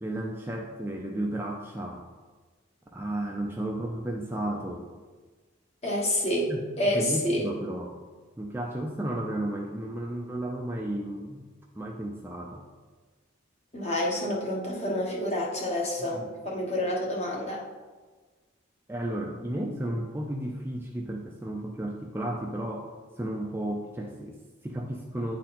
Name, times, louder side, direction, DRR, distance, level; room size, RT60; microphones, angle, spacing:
voice 1, 0.0-2.1 2.9-4.9 6.5-6.6 6.9-8.0 8.4-11.4 11.7-12.6 16.1-16.3 18.9-22.9 23.2-25.4, right 1 dB, 10° right, 0 dB, 0.5 m, -33 dB
voice 2, 5.8-6.5 6.8-7.5 13.7-17.6, left 1 dB, 30° left, -3 dB, 1.4 m, -28 dB
9.9 x 3.9 x 4.3 m, 1.4 s
head